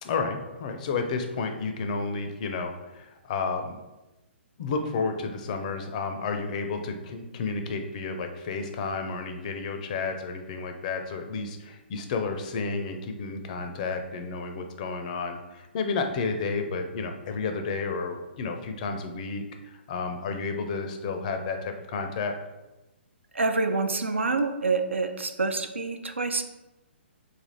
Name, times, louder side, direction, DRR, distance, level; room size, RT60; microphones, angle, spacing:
voice 1, 0.0-3.8 4.6-22.3, left 4 dB, 40° left, 5 dB, 0.4 m, -31 dB
voice 2, 23.3-26.4, right 3 dB, 80° right, 8 dB, 0.4 m, -27 dB
3.3 x 2.4 x 4.0 m, 1.0 s
figure-of-eight pair, 130°, 6 cm